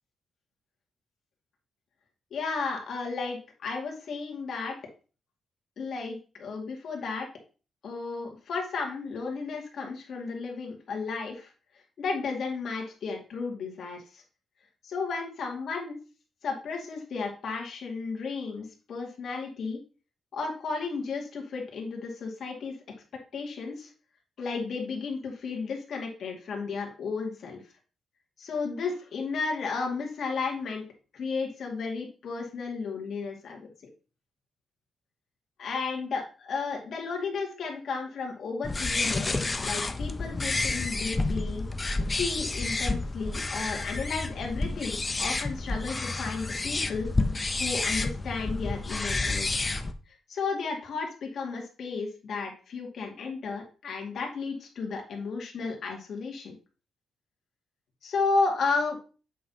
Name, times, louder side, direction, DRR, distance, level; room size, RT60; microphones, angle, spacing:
voice 1, 2.3-4.8 5.8-7.3 7.8-11.5 12.0-14.2 14.8-16.0 16.4-19.8 20.3-22.7 23.3-23.9 24.4-27.6 28.4-30.8 31.1-33.7 35.6-41.6 42.1-47.1 47.6-49.5 50.3-56.5 58.0-59.0, left 4 dB, 65° left, 1 dB, 2.0 m, -33 dB
sound 1, 38.6-49.9, left 3 dB, 25° left, 0.6 m, -30 dB
7.5 x 5.5 x 2.8 m, 0.36 s
cardioid pair, 105°, 0 cm